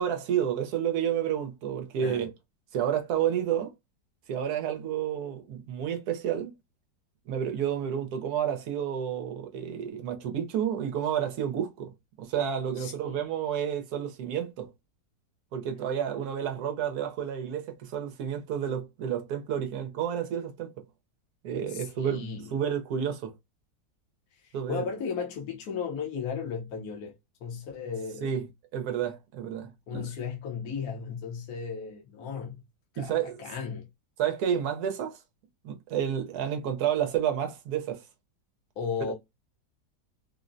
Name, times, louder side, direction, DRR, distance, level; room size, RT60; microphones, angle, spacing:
voice 1, 0.0-2.3 2.7-3.7 4.3-6.5 7.3-11.9 12.2-14.7 15.5-20.8 21.4-22.2 22.5-23.3 24.5-24.9 28.2-28.4 28.7-30.1 33.0-33.4 34.2-35.2 35.6-38.0, right 9 dB, 70° right, 1.1 m, -30 dB
voice 2, 12.8-13.3 21.7-22.5 24.4-27.1 27.4-28.3 29.9-32.6 32.9-33.9 38.8-39.1, left 6 dB, 65° left, 1.2 m, -35 dB
3.7 x 2.0 x 2.5 m
omnidirectional pair, 1.9 m